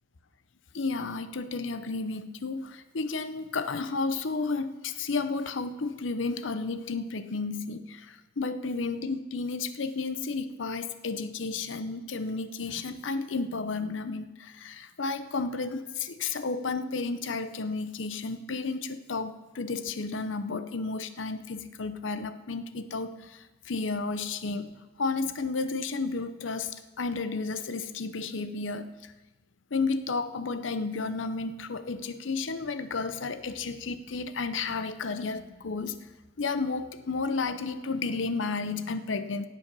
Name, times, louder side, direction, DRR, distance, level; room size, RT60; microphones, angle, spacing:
voice 1, 0.7-26.7 27.0-28.9 29.7-35.9 36.4-39.5, left 4 dB, 75° left, 11 dB, 0.7 m, -32 dB
16.5 x 7.7 x 5.4 m, 1.1 s
head